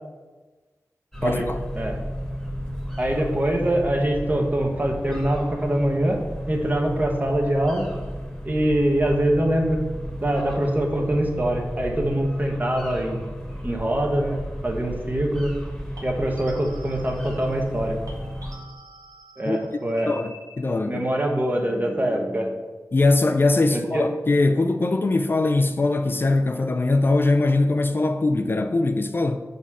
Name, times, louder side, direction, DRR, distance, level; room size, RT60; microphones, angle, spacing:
sound 1, 1.1-18.5, equal, 5° left, 1.3 m, -33 dB
voice 1, 1.2-1.6 19.5-19.6 20.1-21.0 22.9-29.4, left 2 dB, 35° left, 0.3 m, -21 dB
voice 2, 3.0-6.2 6.5-7.9 8.4-9.8 10.2-13.2 13.6-14.4 14.6-15.5 16.0-18.0 19.4-20.1 20.9-22.5 23.7-24.0, right 1 dB, 30° right, 1.0 m, -24 dB
sound 2, 11.0-11.3 16.0-17.8 18.1-21.0, equal, 90° right, 1.8 m, -47 dB
5.4 x 4.1 x 6.1 m
wide cardioid pair, 85°, 6 cm